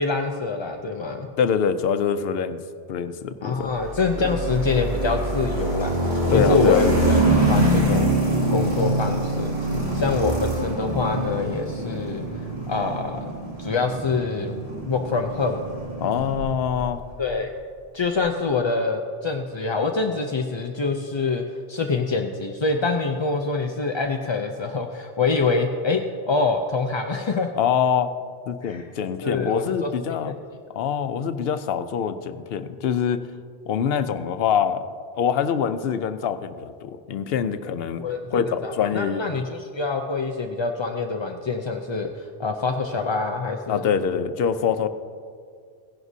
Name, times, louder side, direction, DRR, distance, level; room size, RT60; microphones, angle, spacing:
voice 1, 0.0-1.3 3.4-5.9 6.3-7.2 7.5-8.1 8.5-9.5 9.9-12.2 12.7-13.2 13.6-14.5 14.8-15.6 17.2-17.5 17.9-26.0 26.3-27.5 28.6-28.9 29.2-30.3 38.0-43.8, left 4 dB, 40° left, 3 dB, 0.4 m, -25 dB
voice 2, 1.4-2.6 2.9-3.7 4.2-4.3 6.3-6.8 16.0-17.0 27.6-28.1 28.5-30.4 30.8-33.2 33.7-34.9 35.1-38.0 38.3-39.4 43.7-44.9, left 7 dB, 70° left, 11 dB, 0.8 m, -24 dB
sound 1, 3.8-16.9, right 1 dB, 50° right, 2.9 m, -25 dB
16.5 x 11.0 x 2.7 m, 2.2 s
omnidirectional pair, 1.1 m